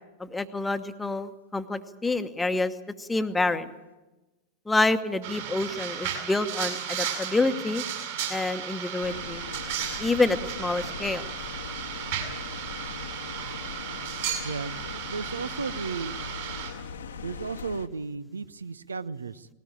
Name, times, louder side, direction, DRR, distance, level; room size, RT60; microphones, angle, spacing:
voice 1, 0.2-2.7 3.0-3.7 4.7-7.8 8.3-9.4 10.0-11.2, left 3 dB, 10° left, 9 dB, 1.1 m, -27 dB
sound 1, 5.2-16.7, right 8 dB, 55° right, 6.6 m, -34 dB
sound 2, 9.0-17.9, left 5 dB, 65° left, 1.2 m, -40 dB
voice 2, 14.4-16.4 17.2-19.5, right 4 dB, 75° right, 16 dB, 0.7 m, -35 dB
19.5 x 18.0 x 8.8 m, 1.1 s
figure-of-eight pair, 90°, 0 cm